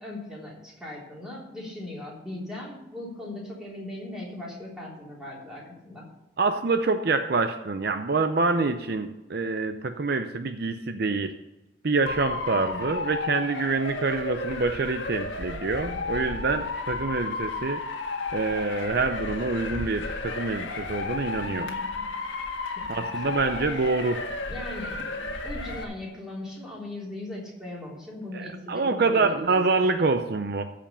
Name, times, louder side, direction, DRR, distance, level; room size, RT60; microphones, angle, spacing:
voice 1, 0.0-6.1 21.6-22.0 22.7-23.0 23.9-24.0 24.5-29.8, left 1 dB, 5° right, -5 dB, 3.5 m, -39 dB
voice 2, 6.4-11.3 11.8-17.8 18.3-21.7 22.9-24.2 28.3-30.7, right 3 dB, 50° right, 8 dB, 0.6 m, -26 dB
Motor vehicle (road) / Siren, 12.1-25.8, left 3 dB, 75° left, 1.6 m, -33 dB
14.0 x 5.2 x 6.9 m, 1.0 s
head